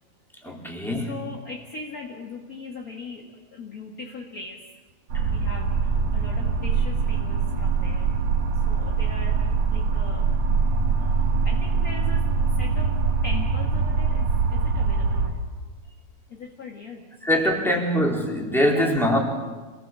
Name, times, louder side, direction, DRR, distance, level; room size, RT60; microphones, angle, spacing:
voice 1, 0.4-1.3 5.1-5.3 17.2-19.2, equal, ahead, -1 dB, 3.6 m, -23 dB
voice 2, 1.1-4.7 5.3-8.1 8.7-10.3 11.0-15.4 15.8-16.0 16.3-17.1 18.6-19.2, left 3 dB, 35° left, 1 dB, 1.8 m, -40 dB
sound 1, 5.1-15.3, right 5 dB, 70° right, 3.9 m, -23 dB
27.0 x 19.5 x 7.5 m, 1.3 s
omnidirectional pair, 3.4 m